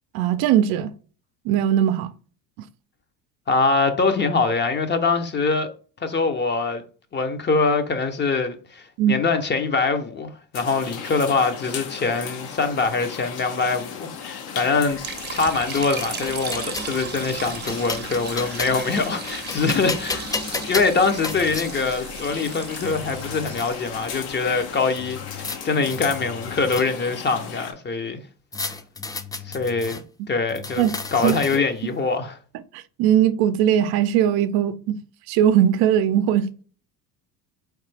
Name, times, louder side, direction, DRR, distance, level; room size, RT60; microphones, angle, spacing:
voice 1, 0.1-0.9 1.4-2.1 9.0-9.2 30.8-30.9 31.2-31.3 32.7-35.0 35.3-36.5, right 10 dB, 65° right, 0.6 m, -19 dB
voice 2, 3.5-5.7 6.0-6.8 7.1-15.0 15.3-20.3 20.7-28.2 29.4-30.0 30.3-30.8 31.1-32.4, left 4 dB, 25° left, 0.7 m, -23 dB
sound 1, 10.5-27.7, left 7 dB, 65° left, 1.0 m, -36 dB
Liquid, 14.9-25.1, right 7 dB, 25° right, 0.7 m, -37 dB
sound 2, 15.2-16.9 17.5-18.9 19.3-21.7 22.5-22.6 22.8-23.7 25.0-25.6 25.9-27.2 28.5-30.0 30.5-31.8, left 3 dB, 10° left, 0.3 m, -33 dB
3.9 x 3.2 x 3.3 m
supercardioid pair, 85°, 41 cm